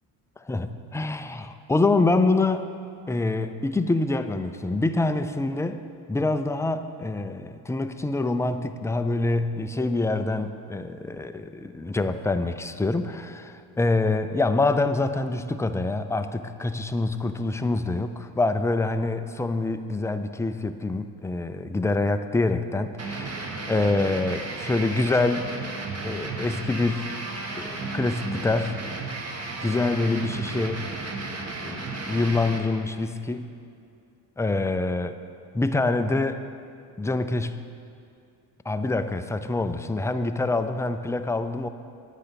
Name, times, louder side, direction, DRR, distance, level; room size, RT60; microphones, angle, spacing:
voice 1, 0.4-2.7 3.1-5.8 6.1-25.5 26.0-27.1 27.6-28.8 29.6-30.8 31.6-33.5 34.4-35.1 35.5-36.4 37.0-37.6 38.7-41.7, left 2 dB, 5° left, 9 dB, 0.3 m, -26 dB
sound 1, 23.0-32.6, right 3 dB, 35° right, 1.4 m, -34 dB
9.9 x 8.3 x 5.8 m, 2.4 s
cardioid pair, 95°, 43 cm